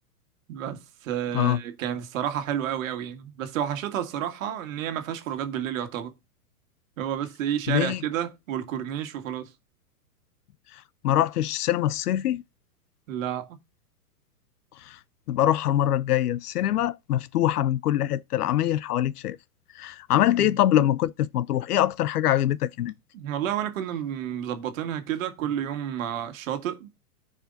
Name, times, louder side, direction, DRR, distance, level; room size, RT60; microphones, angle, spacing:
voice 1, 0.5-6.1 7.0-9.5 13.1-13.5 20.4-20.5 23.1-26.9, right 10 dB, 60° right, 1.8 m, -30 dB
voice 2, 7.7-8.0 11.0-12.4 14.9-15.0 15.3-19.4 19.8-22.9, left 12 dB, 85° left, 0.6 m, -24 dB
14.0 x 5.0 x 2.5 m
hypercardioid pair, 130°, 45 cm